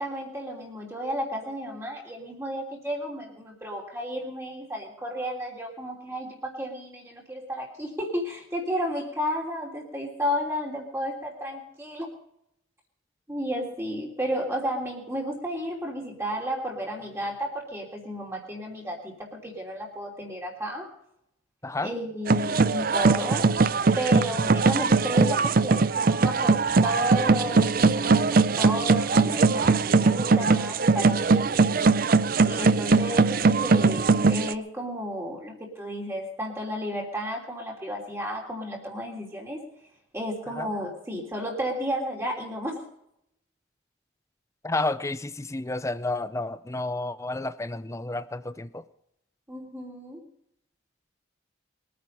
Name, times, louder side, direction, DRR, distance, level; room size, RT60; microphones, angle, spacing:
voice 1, 0.0-12.1 13.3-20.9 21.8-23.5 23.9-31.9 32.4-39.6 40.1-42.8 49.5-50.2, equal, 15° right, -2 dB, 3.1 m, -32 dB
sound 1, 22.3-34.5, right 4 dB, 45° right, 0.5 m, -21 dB
voice 2, 44.6-48.8, left 2 dB, 15° left, 14 dB, 0.6 m, -31 dB
22.0 x 9.3 x 5.5 m, 0.76 s
head